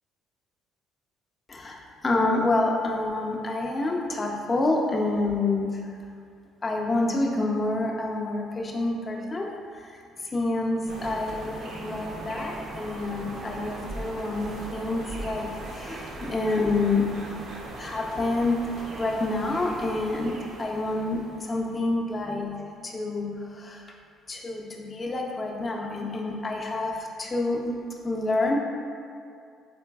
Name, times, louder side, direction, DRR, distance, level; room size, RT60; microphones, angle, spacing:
voice 1, 1.5-5.9 6.6-10.0 10.3-17.1 17.8-18.6 19.0-22.6 22.8-23.8 24.3-27.8 28.0-28.6, left 2 dB, 25° left, 0 dB, 0.4 m, -28 dB
sound 1, 10.9-21.8, right 2 dB, 55° right, 0.4 m, -39 dB
3.8 x 3.2 x 2.2 m, 2.3 s
cardioid pair, 120°, 0 cm